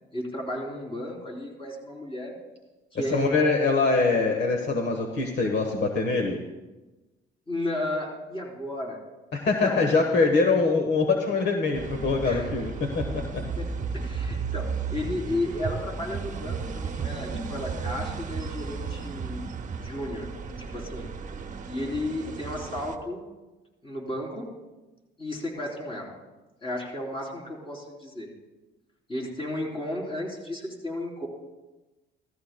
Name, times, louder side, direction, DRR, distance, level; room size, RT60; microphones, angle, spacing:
voice 1, 0.1-2.4 2.9-3.3 7.5-9.0 9.6-9.9 12.2-12.5 13.1-13.2 13.6-13.7 13.9-19.5 19.8-20.3 20.6-21.1 21.7-23.2 23.8-24.5 25.2-26.1 26.6-28.3 29.1-31.3, left 1 dB, 25° left, -1 dB, 3.5 m, -33 dB
voice 2, 3.1-6.4 9.3-13.4, left 3 dB, 60° left, 3 dB, 1.2 m, -24 dB
sound 1, 11.7-23.0, right 5 dB, 40° right, 0.9 m, -34 dB
15.5 x 14.5 x 2.2 m, 1.1 s
cardioid pair, 90°, 20 cm